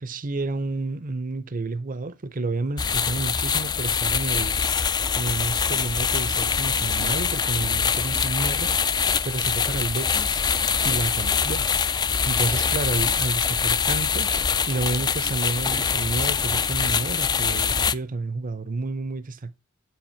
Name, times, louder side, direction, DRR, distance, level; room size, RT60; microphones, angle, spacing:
voice 1, 0.0-4.5 5.1-8.7 9.2-10.4 10.8-11.7 12.3-14.3 14.7-19.5, right 3 dB, 45° right, 0.7 m, -30 dB
sound 1, 2.8-17.9, left 6 dB, 20° left, 0.4 m, -24 dB
8.0 x 7.2 x 4.4 m
head